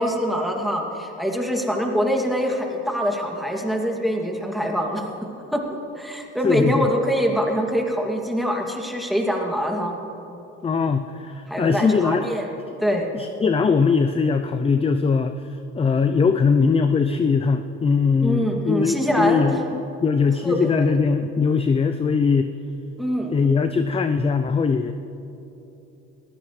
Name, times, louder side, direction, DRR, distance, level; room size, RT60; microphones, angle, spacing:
voice 1, 0.0-5.0 5.5-10.0 11.5-12.5 12.8-13.1 18.2-19.4 20.4-20.9 23.0-23.3, equal, ahead, 1 dB, 2.3 m, -24 dB
voice 2, 6.4-6.9 10.6-12.3 13.2-15.4 15.7-22.5 23.3-24.9, left 5 dB, 15° left, 9 dB, 0.5 m, -21 dB
22.0 x 15.0 x 3.2 m, 2.9 s
supercardioid pair, 85°, 33 cm